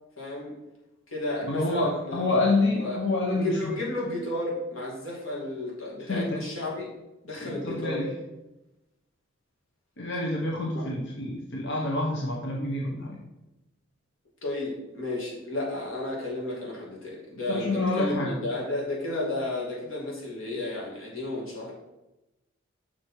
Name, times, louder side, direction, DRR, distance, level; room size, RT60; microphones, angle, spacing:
voice 1, 0.2-0.5 1.1-2.4 2.7-3.0 3.3-6.9 7.2-8.1 10.7-10.8 14.4-21.7, left 2 dB, 85° left, -3 dB, 2.5 m, -32 dB
voice 2, 1.5-3.7 6.1-6.4 7.3-8.1 10.0-13.2 17.5-18.3, left 2 dB, 60° left, -2 dB, 1.1 m, -27 dB
6.6 x 6.0 x 4.4 m, 0.97 s
head